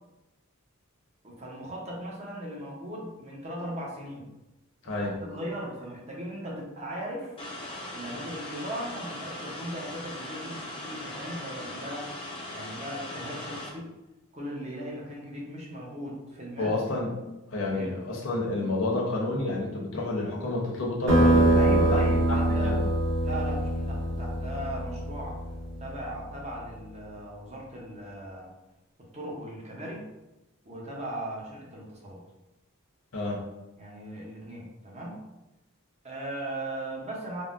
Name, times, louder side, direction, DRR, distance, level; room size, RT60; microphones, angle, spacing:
voice 1, 1.2-4.3 4.8-7.3 7.9-12.1 12.5-13.9 14.3-16.7 17.7-17.9 21.5-22.8 23.2-25.4 25.8-28.5 29.1-30.1 30.6-32.2 33.8-35.2 36.0-37.4, right 1 dB, 30° right, -3 dB, 0.7 m, -38 dB
voice 2, 4.8-5.1 16.6-17.1 17.5-22.0 22.3-22.9 33.1-33.4, left 2 dB, 65° left, -2 dB, 0.7 m, -29 dB
sound 1, 7.4-13.7, left 1 dB, 25° left, 0.4 m, -39 dB
sound 2, 21.1-26.2, right 1 dB, 55° right, 1.2 m, -24 dB
3.5 x 2.0 x 2.4 m, 0.98 s
head